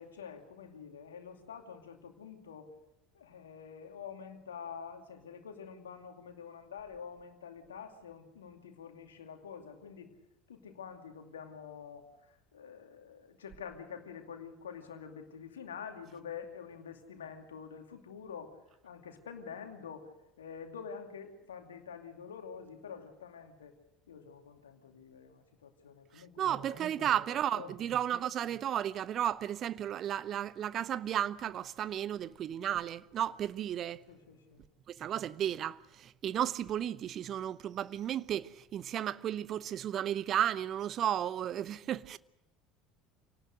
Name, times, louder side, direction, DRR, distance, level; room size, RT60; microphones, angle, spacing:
voice 1, 0.0-2.7 3.1-10.1 10.5-18.6 18.8-20.1 20.4-23.7 24.1-27.1 27.5-27.9 34.1-34.6, left 7 dB, 75° left, 2.4 m, -47 dB
voice 2, 26.4-34.0 34.9-42.2, right 10 dB, 45° right, 0.7 m, -33 dB
26.5 x 18.5 x 6.5 m
figure-of-eight pair, 65°, 0 cm